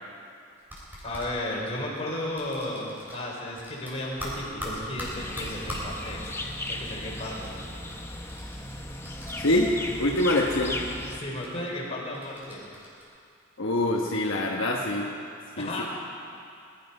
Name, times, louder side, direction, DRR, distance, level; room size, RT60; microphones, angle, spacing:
sound 1, 0.6-1.3 2.4-3.3 3.6-5.9 7.2-9.9 10.2-10.8 11.3-11.5 12.1-13.0, equal, 10° right, 4.0 m, -40 dB
voice 1, 1.0-6.4 6.7-7.5 11.1-12.6 15.6-15.8, left 1 dB, 30° left, -4 dB, 3.8 m, -34 dB
sound 2, 5.0-11.2, left 1 dB, 15° left, 1.0 m, -36 dB
voice 2, 9.4-9.7 10.0-10.8 13.6-15.1 15.6-15.8, left 1 dB, 70° left, -1 dB, 1.2 m, -25 dB
20.5 x 12.0 x 5.5 m, 2.5 s
head